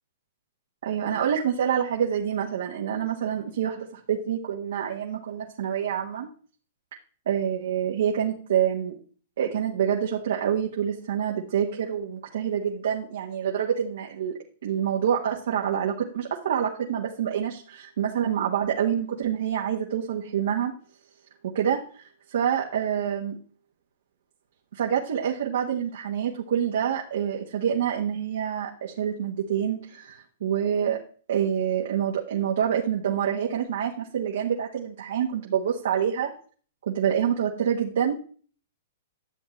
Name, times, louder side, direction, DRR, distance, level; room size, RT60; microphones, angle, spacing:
voice 1, 0.8-6.3 7.3-8.9 9.4-14.3 14.6-20.7 21.5-23.4 24.7-31.0 31.3-36.3 36.9-38.1, right 9 dB, 75° right, 0 dB, 1.3 m, -27 dB
10.5 x 7.0 x 3.2 m, 0.42 s
hypercardioid pair, 135°, 0 cm